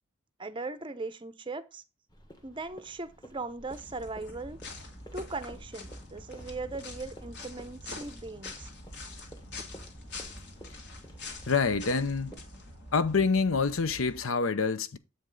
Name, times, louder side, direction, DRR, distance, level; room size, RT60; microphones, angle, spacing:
voice 1, 0.4-1.8 2.4-4.6 5.1-8.7, right 3 dB, 25° right, 0.6 m, -39 dB
sound 1, 2.1-12.4, equal, 20° left, 1.4 m, -52 dB
sound 2, 3.7-14.2, left 2 dB, 55° left, 1.8 m, -45 dB
voice 2, 11.5-12.3 12.9-15.0, left 4 dB, 70° left, 0.7 m, -26 dB
7.5 x 5.3 x 3.8 m
head